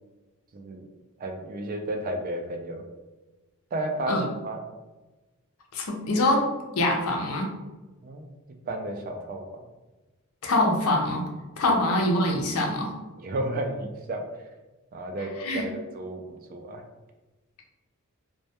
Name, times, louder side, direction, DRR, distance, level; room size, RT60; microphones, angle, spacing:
voice 1, 0.5-0.8 1.2-2.8 3.7-4.6 8.0-8.2 8.7-9.4 13.2-14.2 14.9-15.3 15.6-16.8, right 1 dB, 40° right, 4 dB, 0.3 m, -32 dB
voice 2, 5.7-6.5 6.7-7.5 10.4-11.3 11.6-12.9 15.4-15.6, left 1 dB, 70° left, 1 dB, 0.5 m, -24 dB
2.2 x 2.1 x 2.8 m, 1.1 s
head